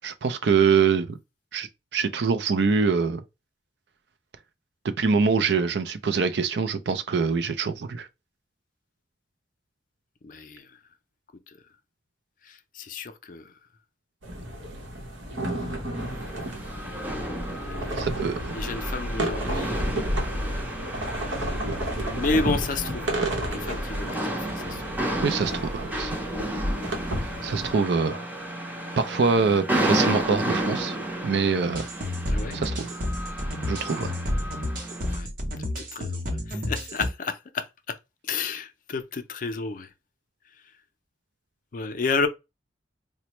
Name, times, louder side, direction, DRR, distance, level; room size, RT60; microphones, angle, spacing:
voice 1, 0.0-1.2 1.5-3.2 5.0-8.1 18.0-18.5 25.2-26.2 27.4-28.2 29.0-31.0 31.2-31.9 32.5-32.9 33.7-34.2, right 5 dB, 65° right, 0.4 m, -24 dB
voice 2, 10.2-10.8 11.5-11.6 12.4-13.5 15.4-16.2 17.5-18.2 18.5-20.5 22.1-23.2 23.5-24.8 27.3-27.5 32.3-32.6 35.1-35.3 35.8-38.0 38.2-39.9 41.7-42.3, left 4 dB, 45° left, 0.5 m, -32 dB
sound 1, 14.2-27.7, right 1 dB, 90° right, 0.9 m, -31 dB
sound 2, 15.9-35.2, right 1 dB, 10° right, 0.6 m, -32 dB
sound 3, 31.7-37.1, left 1 dB, 45° right, 0.8 m, -30 dB
4.1 x 2.1 x 3.0 m
head